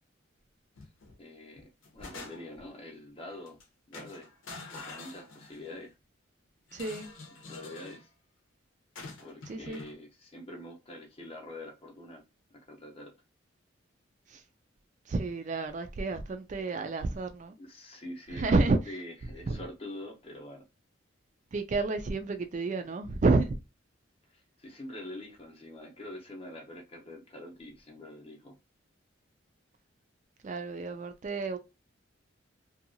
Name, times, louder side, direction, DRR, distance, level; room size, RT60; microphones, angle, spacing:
sound 1, 0.8-1.2 1.6-2.7 3.5-3.6 3.9-5.8 6.7-8.0 9.0-9.9, left 3 dB, 80° left, 0.7 m, -46 dB
voice 1, 1.2-3.6 3.9-4.3 4.7-5.9 7.5-8.1 9.2-12.2 12.7-13.1 17.6-20.6 24.3-28.5, left 1 dB, 30° left, 0.7 m, -45 dB
voice 2, 6.7-7.1 9.5-9.8 14.3-14.4 15.1-17.5 18.3-18.8 19.5-19.6 21.5-23.6 30.4-31.6, right 3 dB, 35° right, 0.3 m, -30 dB
2.7 x 2.3 x 2.6 m
head